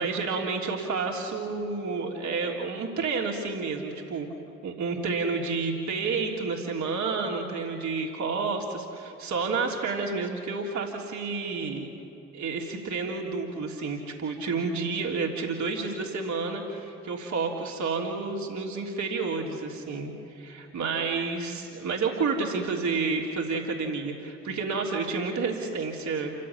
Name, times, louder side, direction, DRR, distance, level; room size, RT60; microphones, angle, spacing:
voice 1, 0.0-4.3 4.6-11.9 12.3-26.3, right 4 dB, 55° right, -1 dB, 3.4 m, -30 dB
28.5 x 16.0 x 8.6 m, 2.9 s
hypercardioid pair, 50°, 35 cm